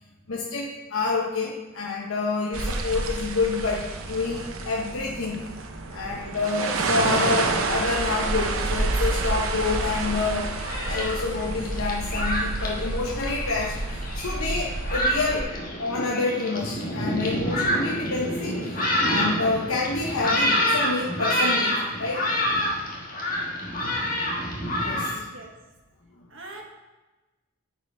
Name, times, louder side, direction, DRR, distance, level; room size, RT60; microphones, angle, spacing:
voice 1, 0.3-5.4 5.9-10.5 10.8-15.5 15.8-22.5 24.8-25.2, left 3 dB, 80° left, -4 dB, 1.0 m, -28 dB
sound 1, 2.5-15.4, right 3 dB, 80° right, 0.8 m, -29 dB
Thunderstorm, 10.3-25.1, equal, 40° left, 1.5 m, -28 dB
voice 2, 26.3-26.6, right 2 dB, 60° right, 1 dB, 1.4 m, -42 dB
9.6 x 4.9 x 4.7 m, 1.1 s
head